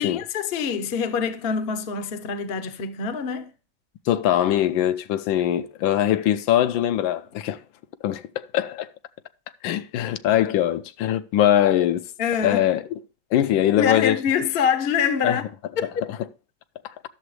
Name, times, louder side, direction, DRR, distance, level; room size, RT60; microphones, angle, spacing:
voice 1, 0.0-3.5 12.2-12.7 13.7-15.5 15.8-15.9, left 7 dB, 50° left, 0.7 m, -25 dB
voice 2, 4.1-7.6 8.0-8.9 9.6-12.0 12.4-12.8 13.3-14.2 15.2-15.4 16.8-16.9, left 11 dB, 80° left, 1.3 m, -22 dB
11.0 x 6.8 x 3.1 m
omnidirectional pair, 2.1 m